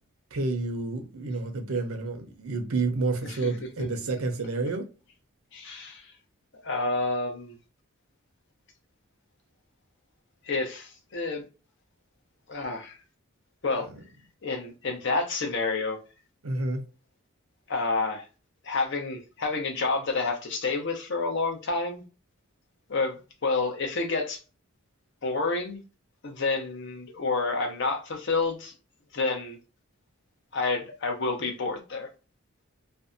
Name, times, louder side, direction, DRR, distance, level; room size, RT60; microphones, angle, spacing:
voice 1, 0.3-4.9 13.8-13.9 16.4-16.8, right 3 dB, 90° right, 0.7 m, -29 dB
voice 2, 5.5-6.1 6.6-7.6 10.5-11.4 12.5-13.0 13.6-13.9 14.4-16.0 17.7-18.2 18.6-22.0 22.9-24.4 25.2-25.8 26.2-28.7 29.1-29.6 30.5-32.1, left 3 dB, 60° left, 0.7 m, -29 dB
2.6 x 2.2 x 2.5 m
head